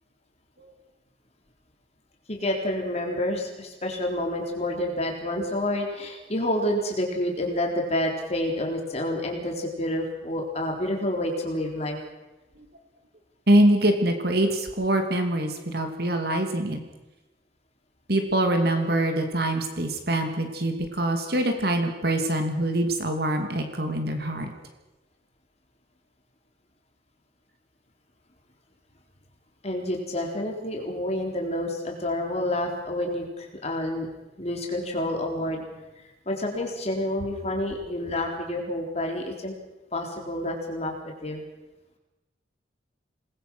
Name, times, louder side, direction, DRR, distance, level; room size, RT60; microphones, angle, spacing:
voice 1, 2.3-12.0 29.6-34.1 34.4-35.6 36.0-39.5 39.9-41.4, left 1 dB, 35° left, 1 dB, 3.9 m, -29 dB
voice 2, 13.5-16.8 18.1-24.5, right 1 dB, 55° right, 5 dB, 2.7 m, -24 dB
28.0 x 20.5 x 6.3 m, 1.1 s
head